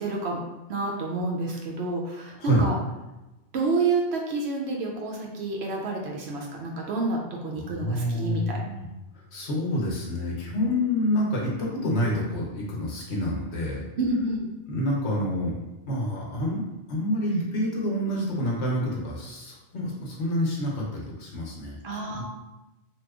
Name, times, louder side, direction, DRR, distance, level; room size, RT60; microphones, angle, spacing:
voice 1, 0.0-2.8 3.5-8.6 14.0-14.5 21.8-22.2, right 3 dB, 65° right, 0 dB, 0.8 m, -29 dB
voice 2, 7.6-8.9 9.3-13.8 14.7-21.8 22.2-22.3, equal, 65° left, -3 dB, 1.1 m, -28 dB
2.9 x 2.2 x 3.5 m, 1.0 s
omnidirectional pair, 1.2 m